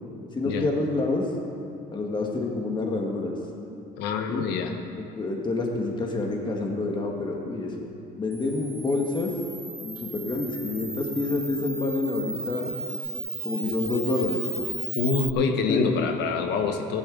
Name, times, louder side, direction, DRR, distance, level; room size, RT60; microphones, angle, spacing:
voice 1, 0.3-1.3 1.9-3.3 4.3-4.4 5.0-7.9 8.2-9.3 9.6-12.7 13.4-14.4 15.7-16.1, left 3 dB, 25° left, 0 dB, 1.7 m, -28 dB
voice 2, 4.0-4.8 14.9-17.0, left 5 dB, 90° left, 5 dB, 1.2 m, -26 dB
Camera, 8.3-15.3, right 2 dB, 10° right, 0.8 m, -35 dB
15.5 x 11.5 x 3.9 m, 2.6 s
cardioid pair, 110°, 17 cm